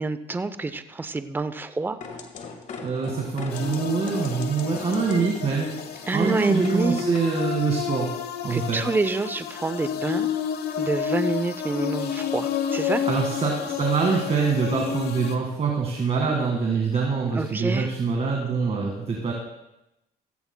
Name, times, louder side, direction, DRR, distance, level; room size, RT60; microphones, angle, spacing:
voice 1, 0.0-2.0 6.1-7.0 8.5-10.3 10.8-13.0 17.3-17.9, right 3 dB, 10° right, 11 dB, 0.6 m, -27 dB
sound 1, 2.0-7.5, left 3 dB, 50° left, 1.5 m, -39 dB
voice 2, 2.8-5.7 6.1-8.1 8.4-8.8 13.0-19.3, right 5 dB, 40° right, 0 dB, 1.8 m, -25 dB
sound 2, 3.5-15.4, left 8 dB, 70° left, 1.1 m, -30 dB
15.5 x 15.5 x 2.2 m, 0.89 s
cardioid pair, 110°, 17 cm